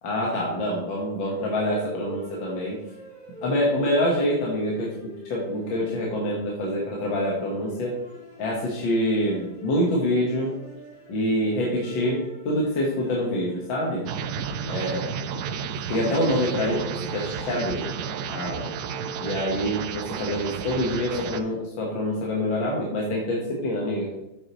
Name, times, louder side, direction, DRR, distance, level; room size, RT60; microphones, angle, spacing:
voice 1, 0.0-2.8 3.4-7.9 8.4-10.5 11.1-14.0 14.7-15.1 15.9-17.9 18.3-18.7 19.2-24.1, left 1 dB, 75° left, -3 dB, 2.1 m, -26 dB
sound 1, 1.6-20.1, right 1 dB, 60° left, 3.2 m, -43 dB
sound 2, 14.1-21.4, right 7 dB, 75° right, 0.9 m, -32 dB
8.8 x 6.8 x 3.0 m, 0.88 s
omnidirectional pair, 2.1 m